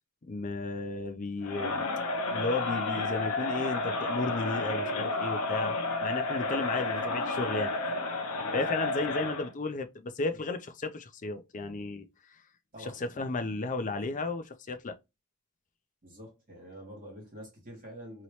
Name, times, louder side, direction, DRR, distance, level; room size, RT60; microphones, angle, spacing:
voice 1, 0.2-1.9 2.3-7.8 8.5-12.1 12.8-14.9, left 3 dB, 35° left, 0.5 m, -34 dB
Crowd, 1.4-9.5, left 2 dB, 75° left, 0.7 m, -31 dB
voice 2, 8.3-9.3 12.7-13.0 16.0-18.2, equal, 40° right, 1.7 m, -48 dB
3.0 x 2.8 x 3.0 m
head